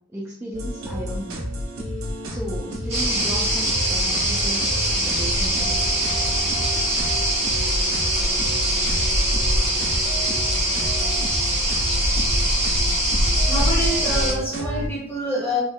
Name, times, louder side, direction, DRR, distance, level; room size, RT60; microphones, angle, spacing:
voice 1, 0.1-1.4 2.3-5.8, equal, 10° right, -6 dB, 0.4 m, -35 dB
sound 1, 0.5-14.9, equal, 85° right, 0.7 m, -30 dB
sound 2, 2.9-14.3, right 1 dB, 30° right, 1.1 m, -22 dB
voice 2, 13.5-15.6, equal, 10° left, -7 dB, 1.4 m, -26 dB
3.5 x 3.1 x 2.2 m, 0.69 s
head